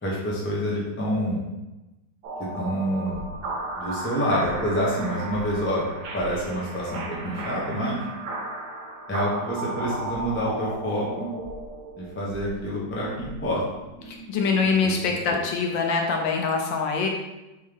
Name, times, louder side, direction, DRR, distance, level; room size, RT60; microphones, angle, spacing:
voice 1, 0.0-1.4 2.4-3.3 3.8-8.0 9.1-11.3 12.0-13.6 14.8-15.4, equal, 15° left, -5 dB, 0.4 m, -27 dB
sound 1, 2.2-15.3, right 2 dB, 80° right, 0.7 m, -36 dB
voice 2, 14.1-17.1, left 5 dB, 75° left, 2 dB, 1.2 m, -24 dB
4.2 x 3.6 x 3.4 m, 1.0 s
omnidirectional pair, 2.2 m